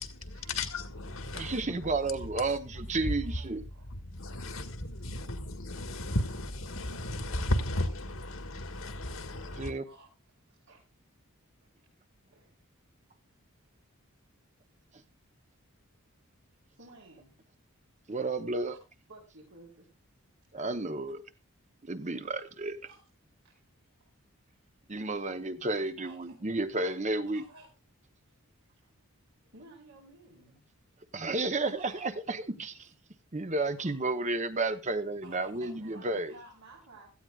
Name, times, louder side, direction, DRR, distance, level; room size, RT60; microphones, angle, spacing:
voice 1, 0.5-1.8 3.0-3.2 4.0-9.7, left 1 dB, 70° left, 1.8 m, -34 dB
voice 2, 1.3-3.6 9.6-9.8 18.1-18.8 20.5-21.2 21.8-22.8 24.9-27.4 31.1-32.7 33.3-36.3, right 2 dB, 30° right, 0.9 m, -32 dB
voice 3, 3.2-3.9 9.8-10.8 12.3-12.5 16.7-17.4 19.1-19.9 22.8-23.0 25.6-26.4 26.8-27.0 27.3-27.7 28.8-29.1 29.5-30.6 31.6-32.1 32.8-32.9 33.8-33.9 35.2-37.1, right 2 dB, 80° right, 4.3 m, -54 dB
17.0 x 14.0 x 2.4 m
head